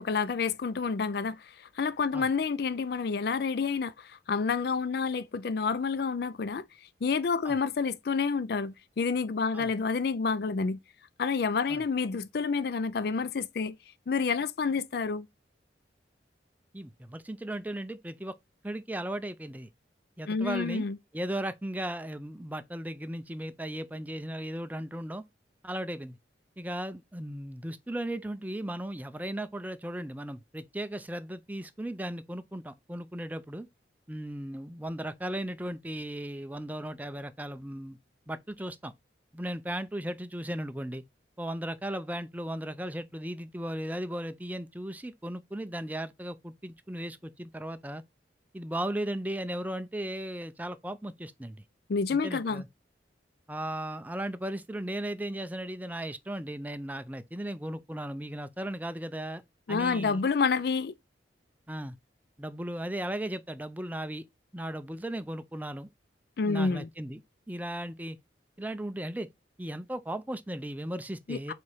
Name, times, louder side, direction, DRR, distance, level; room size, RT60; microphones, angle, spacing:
voice 1, 0.0-1.4 1.8-6.6 7.0-10.8 11.2-13.7 14.1-15.3 20.3-21.0 51.9-52.6 59.7-60.9 66.4-66.9 71.3-71.5, left 5 dB, 60° left, 0.4 m, -29 dB
voice 2, 16.7-18.4 18.6-19.7 20.2-20.9 21.1-25.2 25.6-26.2 26.6-33.7 34.1-38.0 38.3-38.9 39.3-41.0 41.4-48.0 48.5-51.6 52.2-52.7 53.5-59.4 59.7-60.2 61.7-61.9 62.4-64.2 64.5-65.9 66.4-67.2 67.5-68.2 68.6-69.3 69.6-71.5, right 1 dB, 10° right, 0.4 m, -36 dB
4.7 x 4.2 x 4.8 m
head